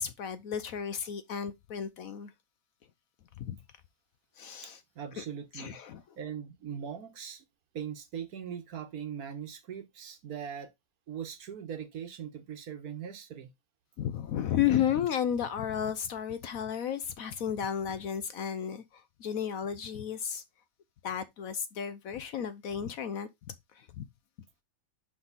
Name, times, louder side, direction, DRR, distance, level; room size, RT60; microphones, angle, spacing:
voice 1, 0.0-2.3 3.4-3.6 4.4-4.8 5.2-5.3 5.5-6.0 14.0-20.4 21.0-24.1, left 9 dB, 65° left, 1.0 m, -33 dB
voice 2, 4.6-5.8 6.2-7.4 7.7-10.7 11.1-13.5, right 8 dB, 60° right, 1.4 m, -40 dB
5.9 x 5.0 x 4.0 m
omnidirectional pair, 1.8 m